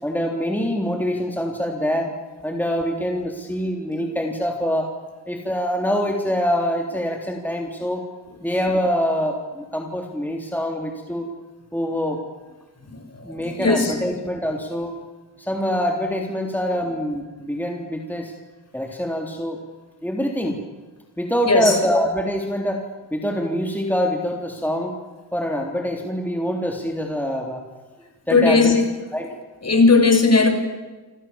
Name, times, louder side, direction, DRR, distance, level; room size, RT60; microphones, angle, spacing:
voice 1, 0.0-2.1 2.4-4.9 5.3-8.0 8.4-11.3 11.7-12.2 13.2-15.0 15.4-18.3 18.7-19.6 20.0-20.6 21.2-22.8 23.1-25.0 25.3-27.6 28.3-28.8 29.1-29.3, equal, 5° left, 1 dB, 3.6 m, -25 dB
voice 2, 13.3-14.0 21.4-21.7 28.3-28.8 29.6-30.5, left 3 dB, 35° left, 5 dB, 6.5 m, -17 dB
28.5 x 27.5 x 7.3 m, 1.2 s
wide cardioid pair, 100°, 42 cm